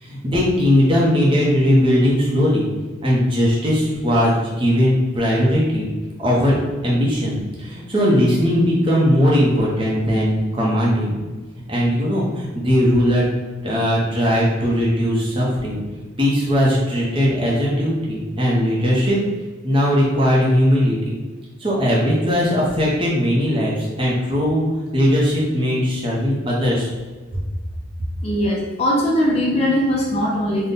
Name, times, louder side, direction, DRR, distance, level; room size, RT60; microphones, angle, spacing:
voice 1, 0.0-2.7 3.0-5.9 6.2-6.6 6.8-11.2 11.7-13.2 13.6-15.8 16.2-19.2 19.6-21.2 21.6-24.6 24.9-26.9, equal, 25° right, -5 dB, 0.7 m, -19 dB
voice 2, 28.2-30.7, equal, 30° left, -3 dB, 0.5 m, -20 dB
3.6 x 2.2 x 4.0 m, 1.3 s
head